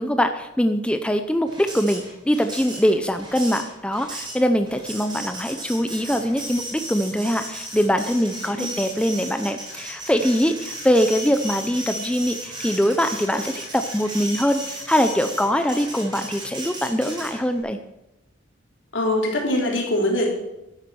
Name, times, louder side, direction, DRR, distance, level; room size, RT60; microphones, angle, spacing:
voice 1, 0.0-17.8, equal, 5° left, 7 dB, 0.5 m, -22 dB
Printer, 1.5-17.6, right 1 dB, 25° right, 3.8 m, -35 dB
voice 2, 18.9-20.3, left 1 dB, 75° left, 0 dB, 3.4 m, -22 dB
12.0 x 9.5 x 6.2 m, 0.93 s
head